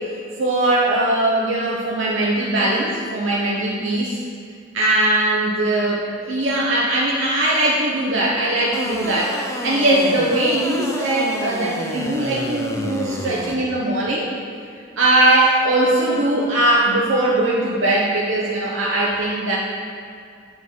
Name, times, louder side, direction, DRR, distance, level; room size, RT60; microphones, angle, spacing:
voice 1, 0.4-4.2 4.7-9.4 9.6-14.3 15.0-19.6, right 1 dB, 70° right, -5 dB, 1.1 m, -20 dB
sound 1, 8.7-13.5, left 1 dB, 15° left, 0.6 m, -30 dB
9.7 x 4.9 x 6.3 m, 2.3 s
head